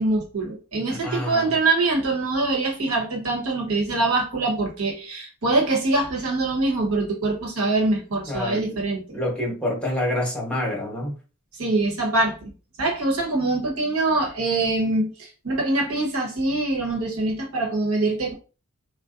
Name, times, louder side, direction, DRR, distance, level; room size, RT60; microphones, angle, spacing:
voice 1, 0.0-9.2 11.6-12.5 12.8-18.3, right 2 dB, 80° right, 1.1 m, -24 dB
voice 2, 0.9-1.5 8.3-8.6 9.1-11.1, left 1 dB, 5° left, 1.0 m, -27 dB
4.0 x 2.1 x 2.5 m
head